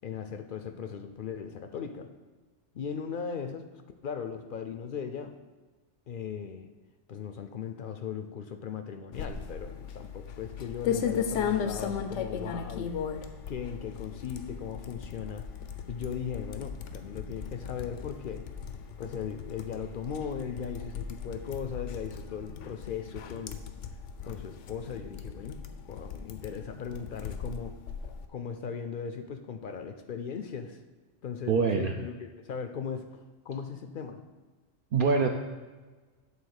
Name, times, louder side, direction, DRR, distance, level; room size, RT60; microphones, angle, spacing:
voice 1, 0.0-2.1 2.7-3.7 4.0-5.3 6.1-6.7 7.1-12.9 13.5-15.5 15.9-18.5 19.0-23.6 24.3-27.8 28.3-30.8 31.2-34.2, left 7 dB, 60° left, 8 dB, 0.6 m, -38 dB
sound 1, 9.1-28.3, left 7 dB, 90° left, 1.0 m, -37 dB
voice 2, 31.5-31.9 34.9-35.3, right 5 dB, 60° right, 3 dB, 0.6 m, -24 dB
8.5 x 3.8 x 6.5 m, 1.3 s
omnidirectional pair, 1.2 m